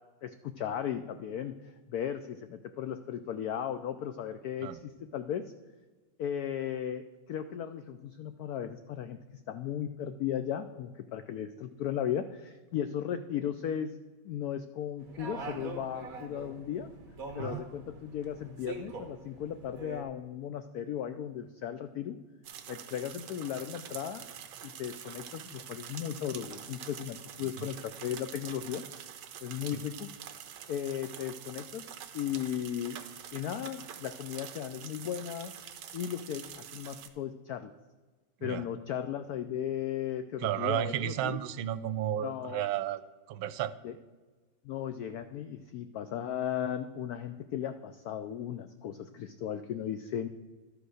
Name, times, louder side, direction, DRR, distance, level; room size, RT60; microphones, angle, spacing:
voice 1, 0.2-5.5 6.2-9.2 9.5-13.9 14.2-16.9 17.3-22.2 22.7-24.3 24.6-28.8 29.4-30.1 30.7-31.8 32.1-33.0 33.3-35.5 35.9-37.7 38.4-41.4 42.2-42.6 43.8-43.9 44.6-50.3, left 9 dB, 85° left, 10 dB, 0.8 m, -36 dB
sound 1, 15.0-20.0, right 3 dB, 50° right, 1.7 m, -44 dB
sound 2, 22.4-37.1, right 9 dB, 70° right, 1.3 m, -46 dB
voice 2, 40.4-43.0 43.3-43.7, right 11 dB, 90° right, 15 dB, 1.4 m, -33 dB
12.0 x 5.0 x 6.3 m, 1.3 s
omnidirectional pair, 2.1 m